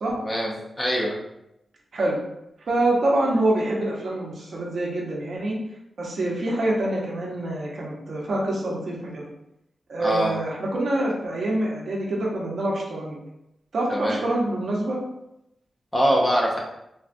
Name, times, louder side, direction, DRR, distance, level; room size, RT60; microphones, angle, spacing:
voice 1, 0.2-1.2 10.0-10.4 13.9-14.2 15.9-16.6, equal, 15° left, -2 dB, 0.5 m, -23 dB
voice 2, 2.7-5.6 6.0-9.3 9.9-13.2 13.7-15.0, right 1 dB, 65° right, -3 dB, 0.7 m, -26 dB
3.4 x 2.2 x 2.5 m, 0.83 s
wide cardioid pair, 155°, 0 cm